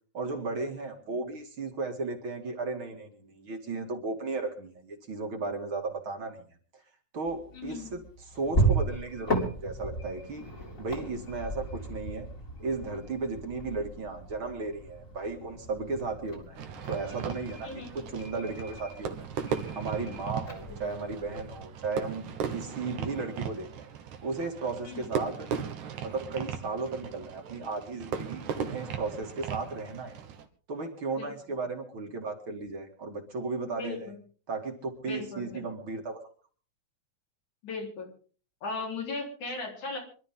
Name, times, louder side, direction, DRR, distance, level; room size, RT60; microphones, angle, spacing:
voice 1, 0.1-6.4 6.7-6.8 7.1-10.4 10.8-12.3 12.6-16.6 16.9-17.7 18.1-19.3 19.7-23.9 24.2-25.5 26.0-30.2 30.7-34.1 34.5-36.2, right 3 dB, 45° right, 3 dB, 2.9 m, -35 dB
sound 1, 7.3-21.6, right 2 dB, 25° left, 3.6 m, -35 dB
voice 2, 7.5-7.9 17.6-18.1 20.5-20.6 24.9-25.1 31.2-31.3 33.8-34.2 35.1-35.6 37.6-38.1 38.6-40.0, left 3 dB, 70° left, 0 dB, 5.5 m, -37 dB
Fireworks, 16.5-30.5, right 7 dB, 75° right, 2.9 m, -37 dB
25.5 x 12.5 x 3.7 m, 0.41 s
omnidirectional pair, 3.5 m